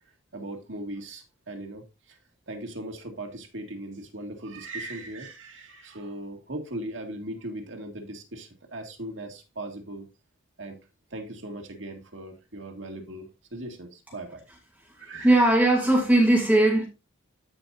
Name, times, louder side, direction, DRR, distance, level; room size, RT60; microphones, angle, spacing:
voice 1, 0.3-2.2 2.5-10.1 10.6-10.8 11.1-14.4 15.0-15.6, right 1 dB, 65° right, 1.9 m, -38 dB
voice 2, 15.2-16.9, right 1 dB, 5° right, 2.5 m, -19 dB
13.5 x 5.4 x 2.5 m
head